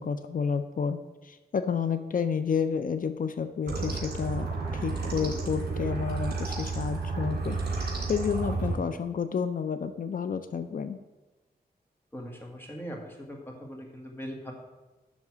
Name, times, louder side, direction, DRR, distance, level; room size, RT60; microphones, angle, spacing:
voice 1, 0.0-4.5 4.7-11.0, left 6 dB, 55° left, 10 dB, 0.5 m, -30 dB
sound 1, 3.7-8.8, right 3 dB, 70° right, 2.7 m, -31 dB
voice 2, 12.1-14.5, equal, 10° left, 0 dB, 1.7 m, -40 dB
10.5 x 3.7 x 7.2 m, 1.1 s
wide cardioid pair, 145°, 17 cm